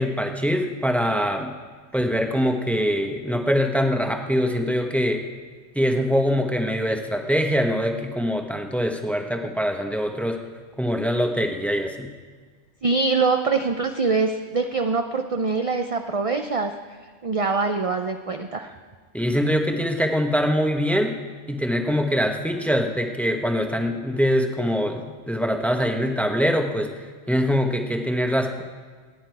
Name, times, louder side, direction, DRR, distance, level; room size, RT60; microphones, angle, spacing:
voice 1, 0.0-1.6 1.9-5.2 5.7-10.4 10.8-12.1 19.1-21.2 21.5-26.9 27.3-28.6, equal, ahead, 4 dB, 1.0 m, -23 dB
voice 2, 12.8-16.7 17.2-18.8, right 4 dB, 40° right, 5 dB, 0.5 m, -24 dB
26.5 x 9.9 x 4.7 m, 1.5 s
omnidirectional pair, 1.3 m